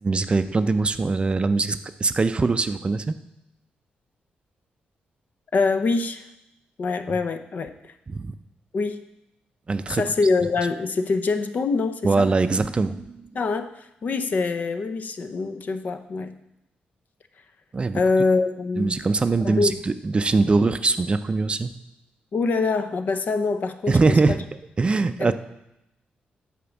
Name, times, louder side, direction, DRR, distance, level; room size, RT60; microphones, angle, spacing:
voice 1, 0.0-3.1 8.1-8.3 9.7-10.0 12.0-13.3 17.7-18.0 18.8-21.7 23.9-24.4 24.8-25.3, right 3 dB, 30° right, 11 dB, 0.5 m, -22 dB
voice 2, 5.5-6.3 6.8-7.9 8.7-9.0 9.9-12.3 13.3-16.3 17.9-18.9 19.4-19.8 22.3-24.4 25.2-25.3, left 4 dB, 55° left, 9 dB, 0.7 m, -24 dB
8.4 x 5.1 x 7.1 m, 0.85 s
cardioid pair, 95°, 3 cm